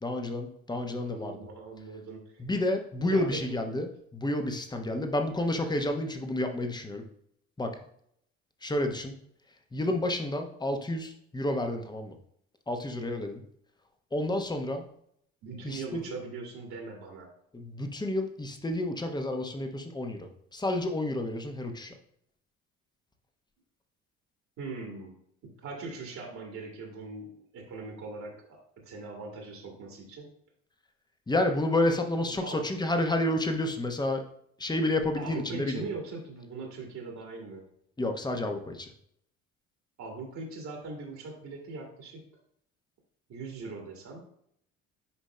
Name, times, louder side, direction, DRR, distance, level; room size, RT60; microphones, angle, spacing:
voice 1, 0.0-1.5 2.4-3.9 4.1-7.0 7.6-7.8 8.6-9.2 9.7-12.2 12.7-13.4 14.1-14.8 15.6-16.0 17.5-21.9 31.3-34.2 34.6-35.8 38.0-38.9, left 1 dB, 10° left, 4 dB, 1.0 m, -30 dB
voice 2, 0.7-2.4 3.0-3.6 15.4-17.3 24.6-25.2 25.4-30.3 32.2-32.6 35.2-37.6 40.0-42.2 43.3-44.2, right 3 dB, 45° right, 1 dB, 1.8 m, -41 dB
10.0 x 5.1 x 2.2 m, 0.69 s
figure-of-eight pair, 55°, 39 cm